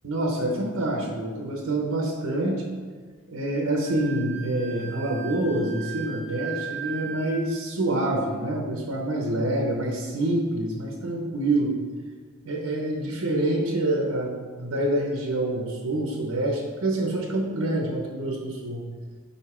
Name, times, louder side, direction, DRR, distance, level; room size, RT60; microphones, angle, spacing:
voice 1, 0.0-2.7 3.3-11.8 12.4-18.9, right 1 dB, 90° right, 1 dB, 0.8 m, -26 dB
Wind instrument woodwind instrument, 3.8-7.5, right 7 dB, 30° left, 0.9 m, -38 dB
5.2 x 5.0 x 4.9 m, 1.5 s
head